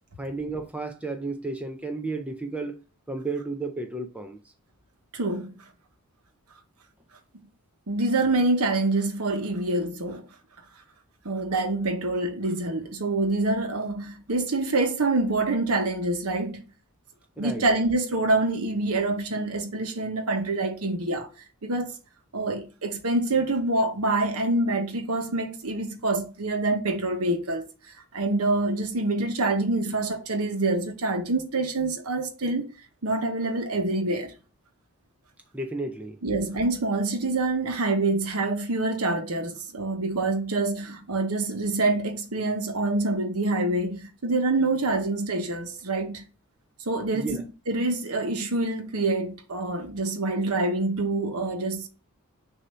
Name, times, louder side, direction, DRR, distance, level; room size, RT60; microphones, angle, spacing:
voice 1, 0.2-2.8 3.1-4.4 17.4-17.6 35.5-36.2 47.1-47.4, right 3 dB, 5° right, 0.5 m, -32 dB
voice 2, 5.1-5.5 7.9-10.2 11.2-16.6 17.4-21.3 21.6-21.9 22.3-27.7 28.1-32.7 33.0-34.3 36.2-46.3 46.9-51.9, right 2 dB, 90° right, 1.1 m, -26 dB
6.5 x 2.7 x 5.4 m
head